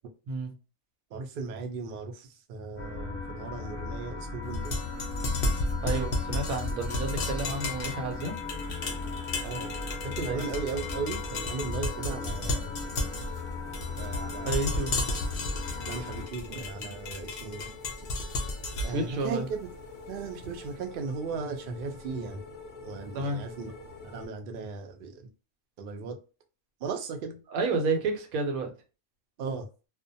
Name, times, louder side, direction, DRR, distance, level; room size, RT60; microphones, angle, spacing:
voice 1, 1.1-4.7 9.4-9.8 10.0-12.8 14.0-14.8 15.9-17.8 18.1-18.3 18.8-19.7 20.1-22.4 22.8-23.7 24.0-25.3 25.8-26.2 26.8-27.4 29.4-29.7, right 4 dB, 65° right, 0.5 m, -37 dB
sound 1, 2.8-16.3, left 4 dB, 10° left, 0.9 m, -37 dB
sound 2, 4.5-20.5, left 2 dB, 85° left, 0.4 m, -34 dB
voice 2, 5.8-8.4 10.2-10.5 14.5-14.9 18.6-19.5 23.1-23.4 27.5-28.7, right 3 dB, 85° right, 1.1 m, -31 dB
sound 3, 8.4-24.3, left 3 dB, 55° left, 0.8 m, -48 dB
2.4 x 2.1 x 2.6 m
omnidirectional pair, 1.4 m